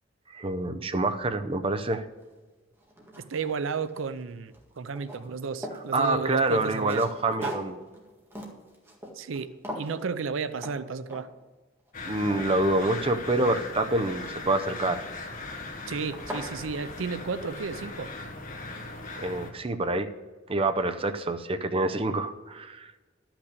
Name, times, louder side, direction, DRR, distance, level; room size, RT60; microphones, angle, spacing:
voice 1, 0.3-2.0 5.9-7.8 12.0-15.0 19.2-20.1 20.5-22.9, right 2 dB, 30° right, 8 dB, 0.6 m, -27 dB
sound 1, 2.2-2.3 2.8-4.2 4.5-5.9 6.4-9.4 9.6-10.0 10.6-10.8 11.1-11.5 11.9-13.5 14.9-15.3 15.8-15.9 16.1-16.5, equal, 10° right, 1.8 m, -40 dB
voice 2, 3.2-7.1 7.4-7.5 9.1-11.3 15.9-18.1, right 5 dB, 90° right, 13 dB, 0.5 m, -33 dB
sound 2, 11.9-19.5, left 3 dB, 45° left, 1.8 m, -39 dB
12.0 x 6.0 x 8.2 m, 1.2 s
head